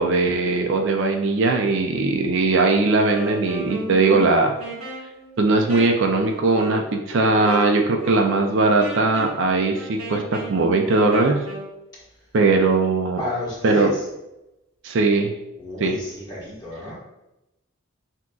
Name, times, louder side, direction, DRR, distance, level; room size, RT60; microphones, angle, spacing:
voice 1, 0.0-4.5 5.4-11.4 12.3-13.2 13.6-13.9 14.8-15.3 15.8-15.9, right 3 dB, 55° right, 3 dB, 0.4 m, -19 dB
Wind instrument woodwind instrument, 3.0-11.7, right 1 dB, 80° right, 1.4 m, -34 dB
voice 2, 13.2-14.1 15.6-16.9, left 2 dB, 20° left, -7 dB, 1.4 m, -31 dB
6.0 x 2.8 x 2.3 m, 0.92 s
head